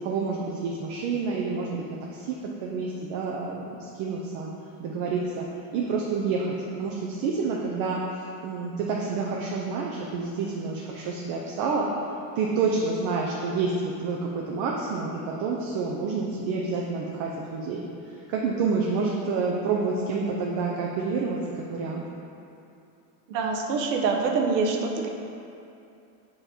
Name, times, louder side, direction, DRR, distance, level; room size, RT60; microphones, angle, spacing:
voice 1, 0.0-2.3 2.6-4.5 4.8-5.4 5.7-8.0 8.4-11.9 12.4-22.0, right 4 dB, 45° right, -2 dB, 0.7 m, -28 dB
voice 2, 23.3-25.1, right 4 dB, 80° right, 2 dB, 0.9 m, -25 dB
6.9 x 3.2 x 4.3 m, 2.7 s
supercardioid pair, 125°, 50 cm